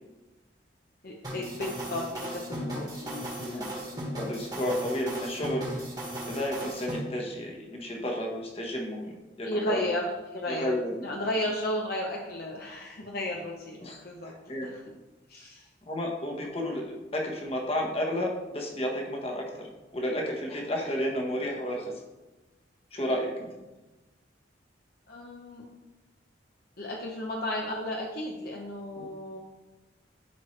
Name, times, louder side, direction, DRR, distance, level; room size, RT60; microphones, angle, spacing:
voice 1, 1.0-3.7 9.4-10.8 11.0-14.3 14.6-14.8 15.3-15.7 25.1-25.6 26.8-29.4, left 1 dB, 50° left, -1 dB, 0.8 m, -34 dB
sound 1, 1.2-7.0, right 1 dB, 20° right, 1.5 m, -36 dB
voice 2, 3.4-3.7 4.2-5.7 6.3-9.9 10.5-11.1 13.8-14.7 15.9-22.0 22.9-23.5 29.0-29.1, equal, 30° left, 0 dB, 1.2 m, -32 dB
11.0 x 4.7 x 3.2 m, 1.1 s
head